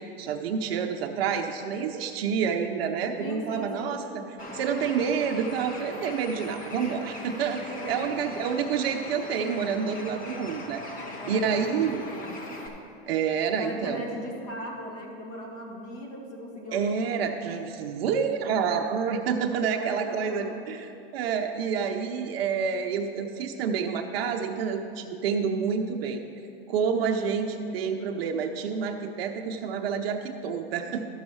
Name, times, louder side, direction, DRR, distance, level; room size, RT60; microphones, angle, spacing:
voice 1, 0.0-4.2 4.5-10.8 11.3-12.0 13.1-14.0 16.7-26.2 26.7-31.1, right 6 dB, 70° right, 4 dB, 0.7 m, -28 dB
voice 2, 3.2-4.0 7.6-8.1 10.9-12.4 13.5-17.0 19.7-20.6, equal, 45° left, 0 dB, 2.0 m, -38 dB
Bird, 4.4-12.7, left 2 dB, 25° left, 1.2 m, -40 dB
13.0 x 6.3 x 4.7 m, 2.7 s
hypercardioid pair, 120°, 31 cm